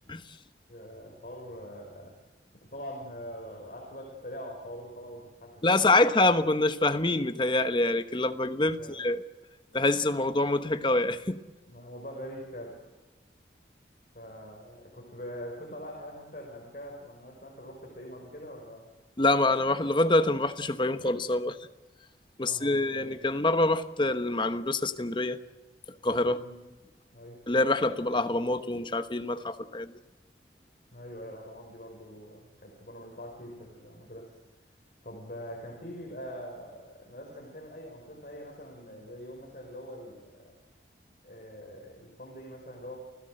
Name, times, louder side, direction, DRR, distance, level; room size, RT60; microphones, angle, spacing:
voice 1, 0.7-2.2 2.6-6.0 8.8-9.0 11.7-12.8 14.1-18.9 22.4-23.3 26.2-26.6 27.1-27.4 30.9-34.3 35.0-40.5 41.2-43.0, equal, 50° left, 5.5 m, -43 dB
voice 2, 5.6-9.2 9.7-11.4 19.2-21.6 22.4-25.4 26.0-26.4 27.5-29.9, left 2 dB, 25° left, 1.1 m, -26 dB
29.0 x 16.5 x 7.8 m
head